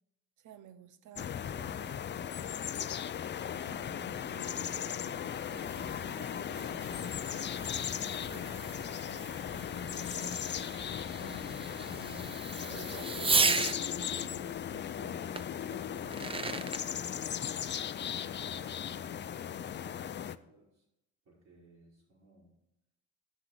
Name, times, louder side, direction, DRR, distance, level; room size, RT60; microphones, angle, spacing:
voice 1, 0.4-2.0 3.4-7.5 8.3-10.4 11.2-16.7, right 8 dB, 85° right, 0.8 m, -54 dB
sound 1, 1.2-20.4, left 9 dB, 35° left, 0.5 m, -37 dB
Fireworks, 5.0-13.8 15.4-15.5 16.0-16.8, right 4 dB, 20° right, 0.5 m, -36 dB
voice 2, 18.2-20.9 21.2-22.5, right 2 dB, 65° right, 4.4 m, -61 dB
12.5 x 5.9 x 4.7 m
cardioid pair, 90°, 30 cm